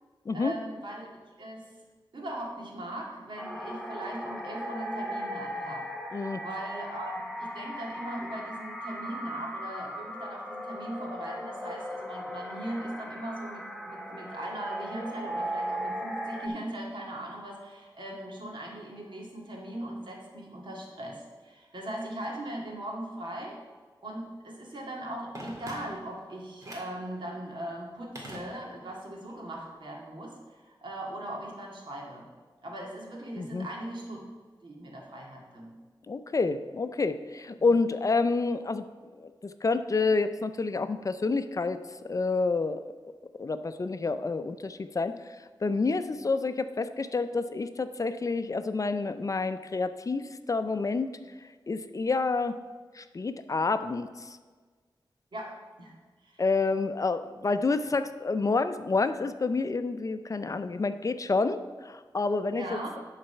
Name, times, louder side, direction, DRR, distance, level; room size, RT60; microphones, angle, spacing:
voice 1, 0.3-1.0 1.4-1.7 2.1-5.9 6.1-23.6 24.0-32.3 32.6-34.2 34.6-35.7 55.3-55.9 56.2-56.4 62.5-63.0, right 1 dB, 70° right, -2 dB, 2.0 m, -39 dB
sound 1, 3.4-16.5, equal, 5° left, 0.8 m, -37 dB
Telephone, 25.3-26.2 26.6-27.0 28.2-29.0 29.3-29.4, equal, 40° right, 2.0 m, -43 dB
voice 2, 33.4-33.7 36.1-38.8 39.2-41.8 42.0-42.8 43.4-45.2 45.6-51.1 51.7-52.6 52.9-54.4 56.4-63.0, left 3 dB, 40° left, 10 dB, 0.4 m, -28 dB
11.0 x 4.0 x 5.6 m, 1.4 s
wide cardioid pair, 105°, 8 cm